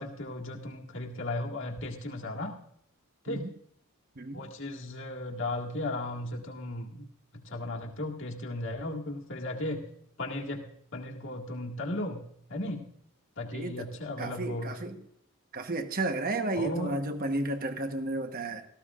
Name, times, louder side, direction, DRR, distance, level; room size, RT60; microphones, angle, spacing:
voice 1, 0.0-2.6 3.3-3.5 4.3-7.0 7.5-9.9 10.2-10.6 10.9-12.2 12.5-12.8 13.4-14.8 16.5-16.9, left 2 dB, 60° left, 0 dB, 2.0 m, -35 dB
voice 2, 13.5-13.9 14.2-15.0 15.5-18.6, right 2 dB, 40° right, 7 dB, 1.1 m, -32 dB
18.0 x 14.0 x 2.5 m, 0.69 s
head